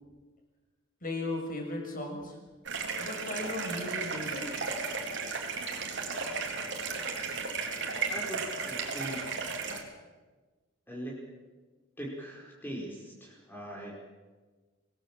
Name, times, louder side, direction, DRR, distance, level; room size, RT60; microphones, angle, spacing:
voice 1, 1.0-2.4 3.0-4.5, left 2 dB, 45° left, 2 dB, 6.6 m, -36 dB
sound 1, 2.6-9.8, right 4 dB, 60° right, 3.7 m, -34 dB
voice 2, 8.7-9.4 10.9-11.2 12.0-13.9, right 1 dB, 10° left, -4 dB, 5.2 m, -40 dB
25.5 x 19.5 x 7.6 m, 1.3 s
head